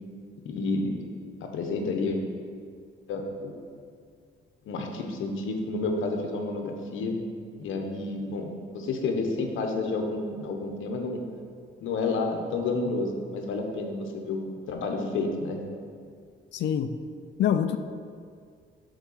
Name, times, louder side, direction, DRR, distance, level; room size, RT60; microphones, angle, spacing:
voice 1, 0.4-1.0 1.4-2.2 3.1-3.6 4.6-7.1 7.6-11.2 11.8-14.4 14.7-15.6, left 3 dB, 80° left, 3 dB, 1.1 m, -30 dB
voice 2, 16.5-17.0 17.4-17.8, left 9 dB, 65° left, 10 dB, 0.5 m, -25 dB
6.4 x 4.9 x 6.6 m, 2.1 s
cardioid pair, 90°, 20 cm